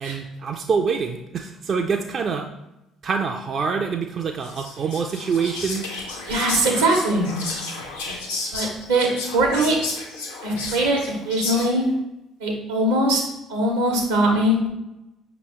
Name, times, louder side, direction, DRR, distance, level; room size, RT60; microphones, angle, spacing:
voice 1, 0.0-2.5 3.0-5.9, right 5 dB, 50° right, 3 dB, 0.3 m, -25 dB
Whispering, 4.4-11.9, left 3 dB, 85° left, 0.7 m, -32 dB
voice 2, 6.3-7.3 8.5-9.8 10.4-11.0 11.2-11.9 12.4-13.2 13.5-14.7, right 1 dB, 85° right, 1 dB, 0.9 m, -21 dB
5.4 x 3.0 x 3.0 m, 0.91 s
hypercardioid pair, 55°, 0 cm